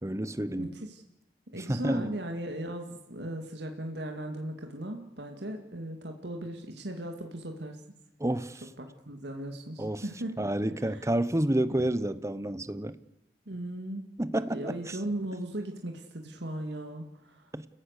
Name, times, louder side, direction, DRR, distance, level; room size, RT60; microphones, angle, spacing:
voice 1, 0.0-0.7 1.7-2.1 8.2-8.6 9.8-10.0 10.4-13.0 14.2-15.0 17.5-17.7, right 1 dB, 15° right, 0.9 m, -29 dB
voice 2, 0.6-1.0 1.5-7.8 8.8-10.3 10.8-11.1 11.8-11.9 13.5-14.1 14.5-17.5, right 1 dB, 70° right, 2.3 m, -37 dB
29.5 x 16.5 x 6.7 m
head